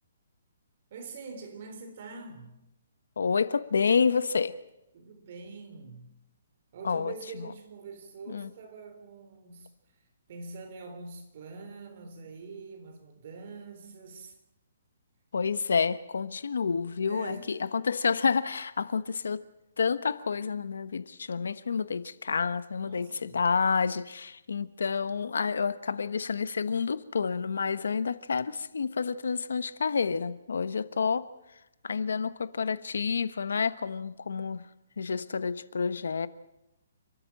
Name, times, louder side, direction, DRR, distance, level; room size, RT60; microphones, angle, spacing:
voice 1, 0.9-2.5 4.9-6.1 6.7-9.7 10.3-14.4 17.0-17.6 22.8-23.4, right 4 dB, 40° right, 3.6 m, -44 dB
voice 2, 3.2-4.6 6.8-7.1 8.3-8.5 15.3-19.4 19.8-31.3 31.8-34.7 35.0-36.3, left 5 dB, 85° left, 1.1 m, -29 dB
29.0 x 13.0 x 7.6 m
hypercardioid pair, 175°, 0 cm